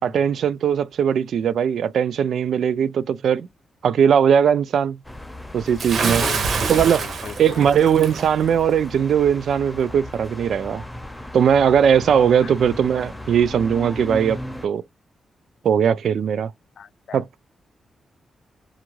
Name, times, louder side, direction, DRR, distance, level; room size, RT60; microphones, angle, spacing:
voice 1, 0.0-3.5 3.8-5.0 5.5-6.2 6.7-7.1 7.4-10.8 11.3-14.8 15.6-16.5 17.1-17.4, right 8 dB, 80° right, 0.3 m, -19 dB
sound 1, 5.0-14.7, left 1 dB, 5° left, 0.5 m, -36 dB
Bathtub (filling or washing) / Splash splatter, 5.8-8.3, right 5 dB, 60° right, 0.7 m, -25 dB
voice 2, 6.0-7.7 12.4-12.6 16.8-17.2, left 7 dB, 70° left, 0.5 m, -38 dB
2.6 x 2.5 x 2.9 m
cardioid pair, 105°, 0 cm